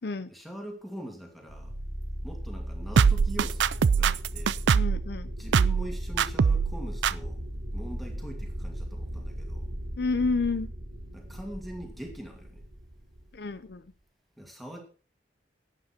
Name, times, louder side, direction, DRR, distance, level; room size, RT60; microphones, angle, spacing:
voice 1, 0.3-1.7 2.2-4.7 5.4-7.4 7.7-9.7 11.1-12.6 14.4-14.8, equal, ahead, 2 dB, 2.5 m, -42 dB
sound 1, 1.5-13.7, equal, 60° right, 2.5 m, -37 dB
sound 2, 3.0-5.0 5.5-5.9 6.2-6.7 7.0-7.1, right 6 dB, 85° right, 0.4 m, -22 dB
voice 2, 4.7-5.3 10.0-10.7 13.3-13.8, left 3 dB, 65° left, 13 dB, 0.6 m, -29 dB
11.5 x 8.9 x 4.5 m, 0.37 s
head